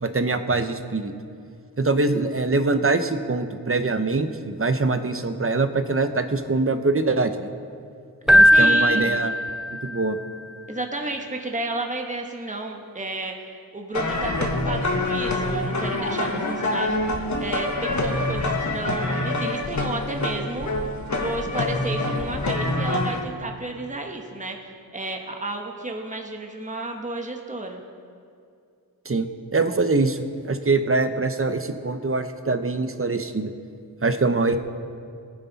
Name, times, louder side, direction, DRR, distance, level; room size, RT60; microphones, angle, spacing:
voice 1, 0.0-1.1 1.8-7.5 8.3-9.3 9.7-10.2 29.0-33.5 34.0-34.6, right 3 dB, 35° right, 9 dB, 0.8 m, -23 dB
Keyboard (musical), 8.3-10.1, equal, ahead, 0.3 m, -18 dB
voice 2, 8.5-9.2 10.7-20.7 21.2-27.8, right 2 dB, 20° right, 2 dB, 1.3 m, -32 dB
sound 1, 13.9-23.2, left 2 dB, 50° left, 1.3 m, -26 dB
21.5 x 9.9 x 4.1 m, 2.4 s
wide cardioid pair, 85°, 37 cm